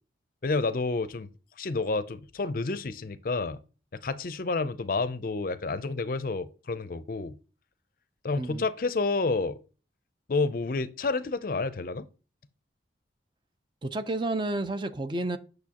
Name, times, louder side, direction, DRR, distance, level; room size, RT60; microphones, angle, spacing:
voice 1, 0.4-1.3 1.6-3.6 4.0-7.3 8.2-9.6 10.3-12.1, left 3 dB, 50° left, 0.5 m, -29 dB
voice 2, 13.8-15.4, right 2 dB, 25° right, 0.5 m, -30 dB
8.4 x 6.5 x 2.9 m
head